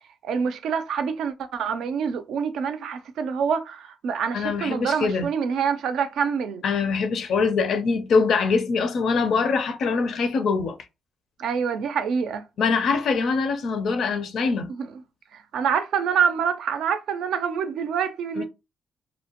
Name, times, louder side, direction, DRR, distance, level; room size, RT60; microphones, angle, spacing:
voice 1, 0.2-6.6 11.4-12.4 14.7-14.9 15.3-18.4, right 6 dB, 75° right, 0.4 m, -26 dB
voice 2, 4.3-5.3 6.6-10.8 12.6-14.7 18.4-18.5, left 4 dB, 65° left, 0.5 m, -23 dB
2.7 x 2.1 x 2.8 m
cardioid pair, 90°, 0 cm